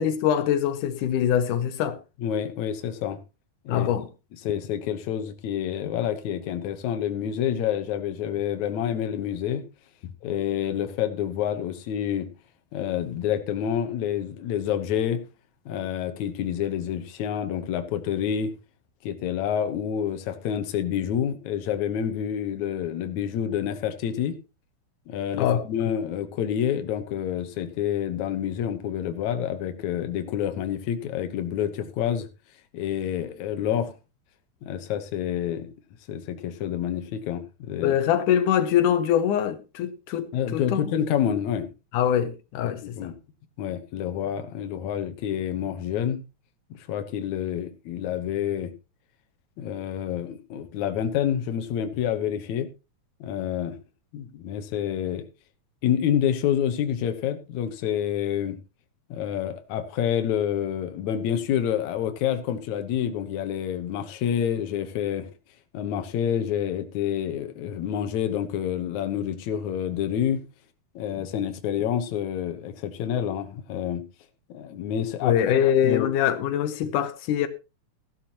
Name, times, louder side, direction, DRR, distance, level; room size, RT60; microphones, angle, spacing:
voice 1, 0.0-2.0 3.7-4.1 25.3-25.6 37.8-40.9 41.9-43.1 75.2-77.5, left 9 dB, 90° left, 2.4 m, -23 dB
voice 2, 2.2-3.2 3.7-3.9 4.4-9.6 10.2-12.3 12.7-15.2 15.7-18.5 19.0-24.4 25.1-32.3 32.7-33.9 34.6-35.7 36.1-37.9 40.3-41.7 43.0-43.2 43.6-46.2 46.7-48.7 49.6-52.7 53.2-53.8 54.1-55.2 55.8-58.6 59.1-65.3 65.7-70.4 71.0-74.0 74.5-76.1, left 9 dB, 70° left, 2.4 m, -28 dB
15.0 x 11.5 x 3.0 m
omnidirectional pair, 3.5 m